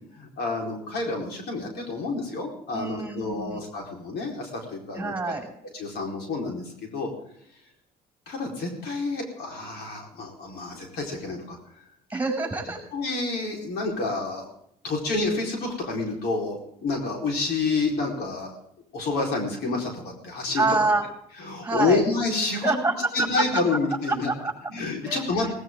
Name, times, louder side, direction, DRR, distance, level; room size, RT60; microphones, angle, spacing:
voice 1, 0.1-5.3 5.7-7.1 8.3-11.6 12.9-14.5 14.8-18.6 18.9-20.6 21.4-22.7 23.1-24.3 24.7-25.5, left 3 dB, 70° left, 0 dB, 4.5 m, -28 dB
voice 2, 2.7-3.6 4.9-5.5 12.1-12.8 20.5-21.1 21.6-22.0 22.6-22.9 23.5-23.6 24.1-24.5 25.0-25.5, right 3 dB, 10° right, 1 dB, 6.7 m, -26 dB
18.5 x 18.0 x 3.8 m, 0.69 s
cardioid pair, 110°, 17 cm